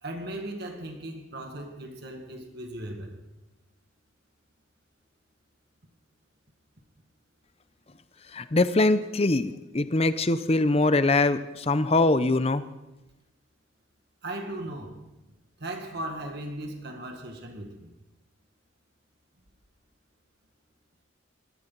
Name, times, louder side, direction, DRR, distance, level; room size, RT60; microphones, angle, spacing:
voice 1, 0.0-3.2 14.2-15.0 15.3-17.9, right 1 dB, 55° right, 1.9 m, -37 dB
voice 2, 8.3-12.7, left 2 dB, 30° left, 0.6 m, -23 dB
21.5 x 14.5 x 4.0 m
head